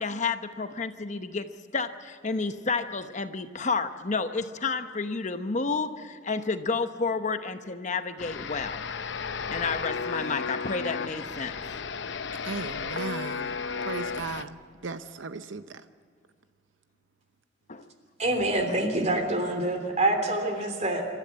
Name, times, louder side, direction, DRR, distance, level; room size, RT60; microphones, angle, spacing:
voice 1, 0.0-1.5 1.7-8.9 9.5-11.6 17.7-17.8, left 4 dB, 40° left, 9 dB, 0.9 m, -30 dB
sound 1, 8.2-14.4, left 5 dB, 65° left, 0.8 m, -34 dB
voice 2, 12.4-13.6 13.8-14.6 14.8-15.8, right 4 dB, 80° right, 11 dB, 0.7 m, -36 dB
voice 3, 18.2-21.1, right 1 dB, 40° right, 5 dB, 3.2 m, -26 dB
27.0 x 13.5 x 8.4 m, 2.2 s
head